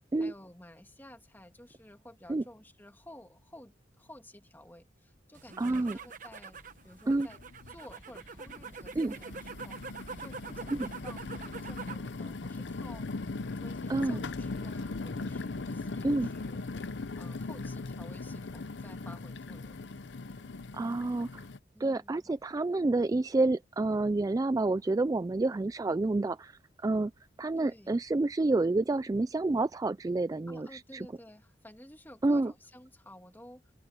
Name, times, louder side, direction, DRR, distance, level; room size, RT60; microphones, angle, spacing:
voice 1, 0.2-6.6 6.8-7.4 7.7-9.8 10.2-13.1 13.5-16.7 17.2-19.8 21.7-22.2 27.6-27.9 30.5-33.7, left 1 dB, 10° left, 2.6 m, -53 dB
sound 1, 5.3-12.1 12.4-13.0, right 4 dB, 45° right, 1.3 m, -45 dB
voice 2, 5.6-6.0 7.1-7.3 9.0-9.1 10.7-10.9 13.9-14.2 16.0-16.3 20.7-21.4 21.8-26.5 26.8-27.1 27.4-30.7 30.9-31.1 32.2-32.5, right 2 dB, 20° right, 0.3 m, -28 dB
sound 2, 6.6-6.7 7.1-7.8 8.4-21.6, left 3 dB, 75° left, 0.7 m, -39 dB
open air
head